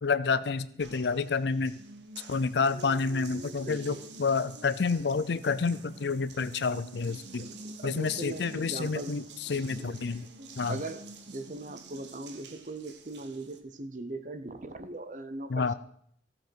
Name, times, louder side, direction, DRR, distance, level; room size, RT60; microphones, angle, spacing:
voice 1, 0.0-1.7 2.3-7.5 7.8-10.3 10.6-10.8 15.5-15.7, left 4 dB, 75° left, 15 dB, 0.5 m, -29 dB
Water tap faucet, 0.8-13.6, right 3 dB, 80° right, 1.1 m, -48 dB
voice 2, 3.6-4.1 7.3-9.1 9.5-10.0 10.7-15.7, right 2 dB, 45° right, 10 dB, 0.7 m, -40 dB
14.5 x 7.6 x 4.6 m, 0.67 s
head